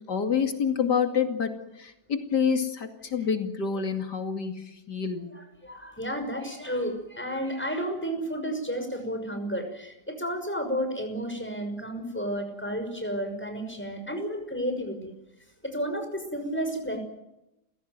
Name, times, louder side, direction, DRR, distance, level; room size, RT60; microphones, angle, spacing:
voice 1, 0.1-1.5 1.8-5.3, left 6 dB, 90° left, 6 dB, 3.0 m, -27 dB
voice 2, 5.3-15.1 15.6-17.0, equal, 5° left, 5 dB, 6.1 m, -32 dB
29.5 x 17.0 x 9.5 m, 0.90 s
omnidirectional pair, 1.8 m